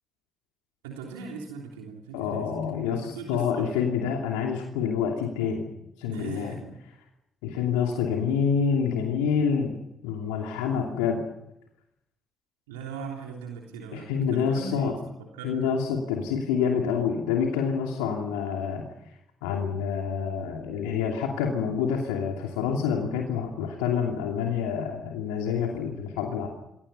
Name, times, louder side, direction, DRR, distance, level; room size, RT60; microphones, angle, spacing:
voice 1, 0.8-2.6 2.8-3.7 6.1-6.8 12.7-15.0 15.3-15.8, right 5 dB, 85° right, 0 dB, 3.2 m, -39 dB
voice 2, 2.1-6.6 7.4-9.8 10.0-11.2 13.9-14.9 15.4-18.8 19.4-26.5, left 7 dB, 80° left, 1 dB, 2.8 m, -27 dB
28.5 x 23.0 x 5.5 m, 0.85 s
hypercardioid pair, 45°, 0 cm